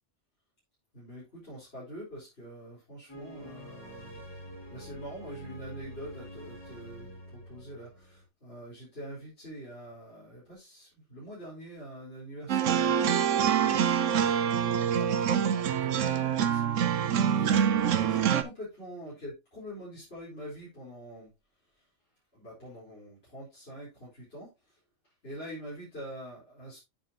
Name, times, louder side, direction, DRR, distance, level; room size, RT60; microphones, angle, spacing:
voice 1, 0.9-4.2 4.7-16.7 17.0-21.3 22.3-24.5 25.2-26.8, equal, 55° left, 4.6 m, -45 dB
sound 1, 3.1-8.2, equal, 20° left, 2.1 m, -46 dB
sound 2, 12.5-18.4, right 8 dB, 85° right, 1.1 m, -25 dB
8.7 x 7.5 x 2.8 m
omnidirectional pair, 1.3 m